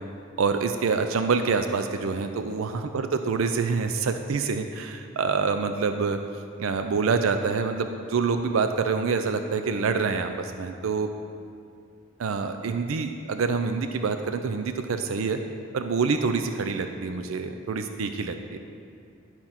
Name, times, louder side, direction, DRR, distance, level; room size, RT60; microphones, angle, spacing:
voice 1, 0.4-6.2 6.6-11.1 12.2-15.4 15.7-18.6, right 5 dB, 80° right, 7 dB, 0.4 m, -26 dB
11.0 x 4.4 x 5.7 m, 2.4 s
head